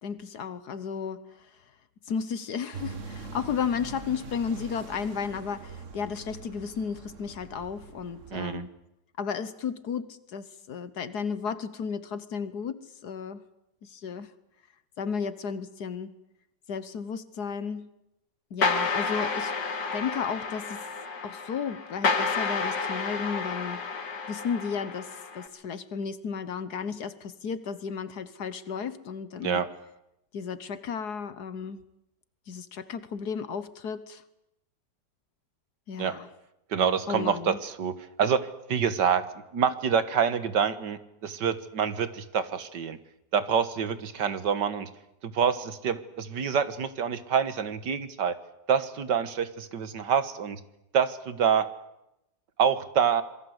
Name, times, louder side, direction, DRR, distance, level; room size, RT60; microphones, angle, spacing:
voice 1, 0.0-1.3 2.1-8.7 9.2-13.4 13.9-14.3 15.0-16.1 16.7-17.9 18.5-19.5 19.9-20.9 21.2-23.8 24.3-29.6 30.3-31.8 32.5-34.2 35.9-36.3 37.1-37.6, left 6 dB, 70° left, 1.7 m, -33 dB
sound 1, 2.7-8.6, right 4 dB, 45° right, 2.0 m, -43 dB
voice 2, 8.3-8.6 29.4-29.7 36.0-36.1 36.7-39.2 39.5-43.0 43.3-44.9 45.2-48.4 48.7-50.6 50.9-51.7 52.6-53.2, right 7 dB, 85° right, 2.1 m, -26 dB
sound 2, 18.6-25.5, left 4 dB, 85° left, 2.9 m, -30 dB
27.0 x 22.5 x 8.0 m
omnidirectional pair, 1.8 m